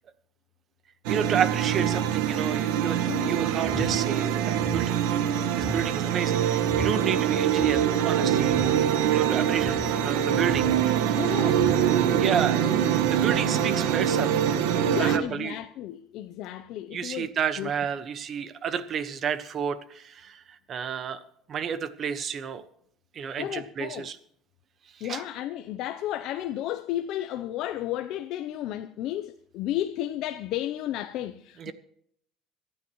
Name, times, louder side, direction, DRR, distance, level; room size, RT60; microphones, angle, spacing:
sound 1, 1.0-15.2, right 9 dB, 85° right, 1.4 m, -24 dB
voice 1, 1.1-5.3 5.6-11.0 12.2-12.6 13.1-14.4 14.7-15.6 16.9-21.2 21.5-22.6 23.1-24.2 25.0-25.2 31.6-31.7, right 7 dB, 40° right, 1.2 m, -31 dB
sound 2, 3.6-4.0 4.6-4.9 5.6-5.9 6.7-7.0 7.6-7.9 8.5-8.8 9.6-9.9 10.5-10.8 11.6-11.9, left 2 dB, 5° left, 3.2 m, -36 dB
voice 2, 11.2-11.7 14.9-17.3 17.6-17.7 23.4-24.1 25.0-31.7, left 12 dB, 65° left, 0.6 m, -33 dB
25.5 x 9.4 x 3.1 m
cardioid pair, 130°, 0 cm